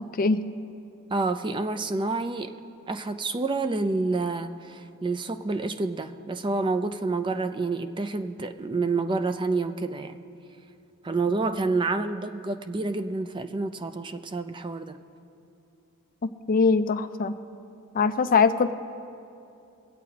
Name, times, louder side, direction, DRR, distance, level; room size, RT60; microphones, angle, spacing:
voice 1, 1.1-2.5 2.9-10.2 11.0-15.0, right 3 dB, 20° right, 9 dB, 0.4 m, -28 dB
voice 2, 16.5-17.3 17.9-18.7, left 4 dB, 40° left, 10 dB, 0.4 m, -21 dB
24.5 x 8.2 x 2.9 m, 2.7 s
head